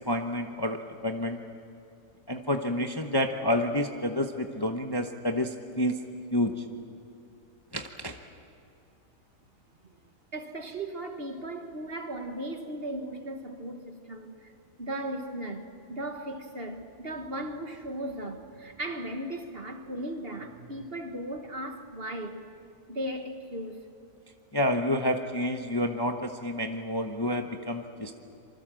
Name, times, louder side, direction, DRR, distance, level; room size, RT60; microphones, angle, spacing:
voice 1, 0.0-1.4 2.3-6.0 6.3-6.6 7.7-8.2 24.5-28.1, left 1 dB, 15° left, 0.9 m, -29 dB
voice 2, 10.3-14.5 14.8-22.5 22.9-23.8, right 1 dB, 40° right, 1.6 m, -37 dB
26.5 x 24.5 x 7.7 m
omnidirectional pair, 1.8 m